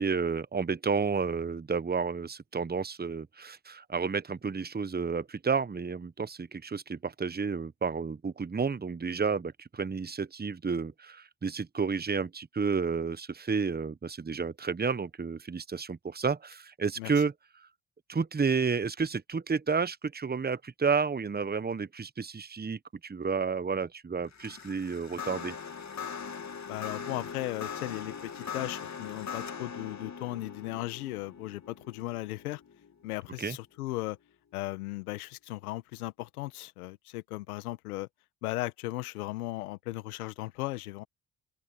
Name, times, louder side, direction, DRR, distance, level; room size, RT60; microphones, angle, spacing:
voice 1, 0.0-17.3 18.1-25.6 33.4-33.6, right 5 dB, 20° right, 1.2 m, -31 dB
sound 1, 24.3-33.6, left 6 dB, 40° left, 2.6 m, -41 dB
voice 2, 26.7-32.6 33.0-34.2 34.5-38.1 38.4-41.0, left 18 dB, 90° left, 1.7 m, -36 dB
open air
hypercardioid pair, 50°, 43 cm